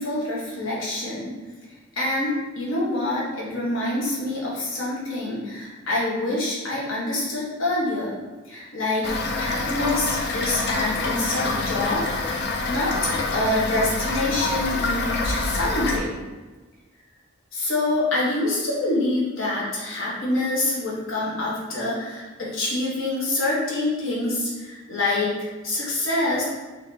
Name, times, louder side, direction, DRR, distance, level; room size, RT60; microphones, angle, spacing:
voice 1, 0.0-1.4 2.0-8.2 8.5-9.1 9.4-12.0 12.3-16.1 17.5-25.3 25.6-26.4, left 2 dB, 70° left, -6 dB, 1.2 m, -26 dB
Toilet flush / Fill (with liquid), 9.0-16.0, left 3 dB, 55° left, 0.4 m, -26 dB
3.9 x 3.1 x 2.7 m, 1.3 s
head